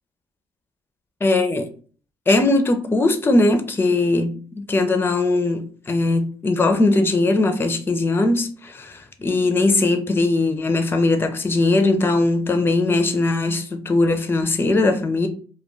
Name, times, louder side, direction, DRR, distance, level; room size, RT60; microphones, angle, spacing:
voice 1, 1.2-1.7 2.3-15.3, left 2 dB, 20° left, 0.4 m, -20 dB
2.2 x 2.2 x 3.0 m
supercardioid pair, 80°, 12 cm